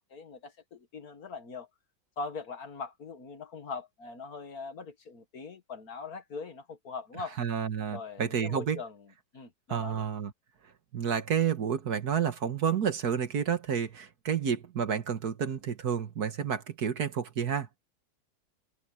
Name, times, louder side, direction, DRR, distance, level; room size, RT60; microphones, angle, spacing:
voice 1, 0.0-1.7 2.2-7.4 7.9-9.1 9.3-10.1, left 4 dB, 55° left, 1.9 m, -41 dB
voice 2, 7.4-8.8 9.7-10.3 10.9-17.7, right 7 dB, 60° right, 1.8 m, -30 dB
open air
omnidirectional pair, 2.0 m